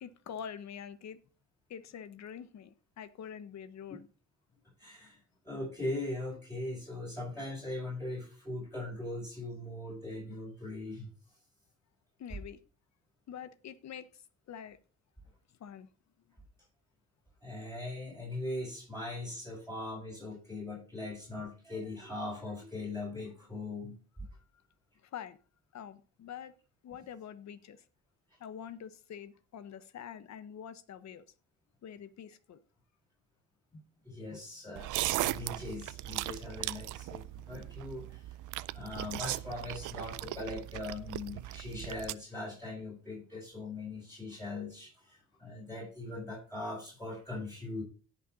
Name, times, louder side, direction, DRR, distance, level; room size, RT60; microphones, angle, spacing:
voice 1, 0.0-1.2 1.7-4.1 12.2-12.6 13.3-14.8 15.6-15.9 25.0-25.4 25.7-26.5 26.8-27.8 28.4-31.3 31.8-32.6, left 8 dB, 65° left, 13 dB, 1.2 m, -45 dB
voice 2, 4.8-5.2 5.4-11.1 17.4-24.0 33.7-34.9 35.2-38.3 38.7-47.8, left 2 dB, 10° left, -6 dB, 6.7 m, -40 dB
sound 1, 34.8-42.1, right 16 dB, 85° right, 0.6 m, -38 dB
17.5 x 6.0 x 4.0 m, 0.35 s
cardioid pair, 90°, 30 cm